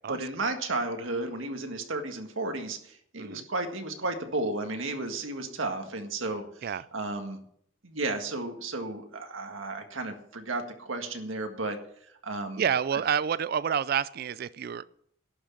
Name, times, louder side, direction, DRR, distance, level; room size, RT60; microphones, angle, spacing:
voice 1, 0.1-6.6 6.9-7.4 7.8-11.8 12.2-12.6, right 2 dB, 80° right, 5 dB, 1.7 m, -33 dB
voice 2, 3.1-3.4 6.6-6.8 12.6-14.9, right 7 dB, 50° right, 18 dB, 0.4 m, -29 dB
11.5 x 6.3 x 8.5 m, 0.68 s
head